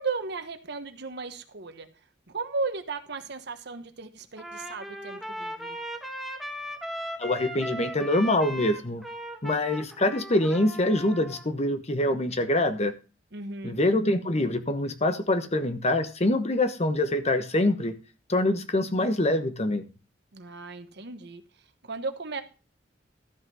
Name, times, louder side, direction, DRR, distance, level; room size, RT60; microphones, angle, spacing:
voice 1, 0.0-1.9 2.3-5.8 13.3-13.8 20.3-21.4 21.8-22.4, right 4 dB, 65° right, 9 dB, 1.2 m, -35 dB
Trumpet, 4.4-11.5, equal, ahead, 1.3 m, -38 dB
voice 2, 7.2-9.0 9.4-12.9 13.6-17.9 18.3-19.8, left 1 dB, 35° left, 10 dB, 1.1 m, -25 dB
13.0 x 5.9 x 5.5 m, 0.32 s
head